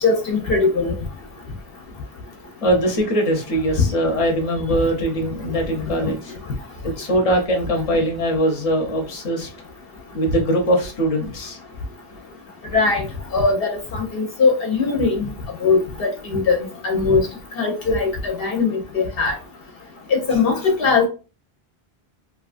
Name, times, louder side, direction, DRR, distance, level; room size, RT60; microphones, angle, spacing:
voice 1, 0.0-0.9 3.8-3.9 12.7-13.1 13.3-15.3 15.6-17.3 17.6-19.3 20.1-21.1, left 4 dB, 70° left, 2 dB, 0.8 m, -20 dB
voice 2, 2.6-6.3 6.8-9.5 10.1-11.6, right 1 dB, 35° left, 1 dB, 0.8 m, -21 dB
2.8 x 2.3 x 2.4 m, 0.33 s
omnidirectional pair, 1.0 m